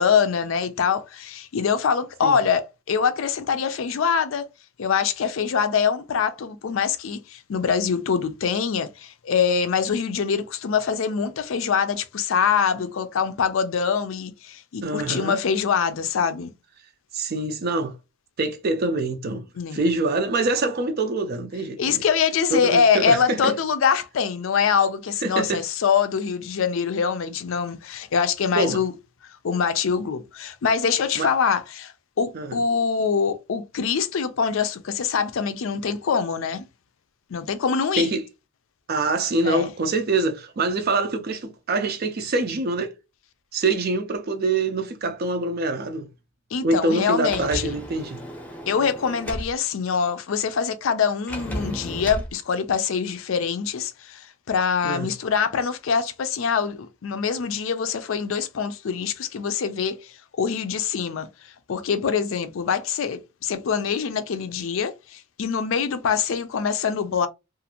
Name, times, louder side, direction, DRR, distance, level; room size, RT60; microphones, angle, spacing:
voice 1, 0.0-4.5 4.8-16.5 19.6-19.8 21.8-28.9 29.4-36.7 37.3-38.1 39.4-39.7 46.5-47.7 48.7-61.3 61.7-67.3, left 6 dB, 65° left, 0.4 m, -24 dB
voice 2, 14.8-15.4 17.1-17.9 18.4-22.0 22.5-23.5 25.2-25.6 28.6-28.8 31.2-31.3 32.3-32.6 38.0-38.3 38.9-42.9 43.5-46.1 46.6-48.2 54.8-55.1, right 2 dB, 45° right, 0.4 m, -25 dB
Sliding door, 47.2-49.5 51.3-52.3, equal, 5° left, 0.6 m, -34 dB
2.5 x 2.4 x 2.8 m
head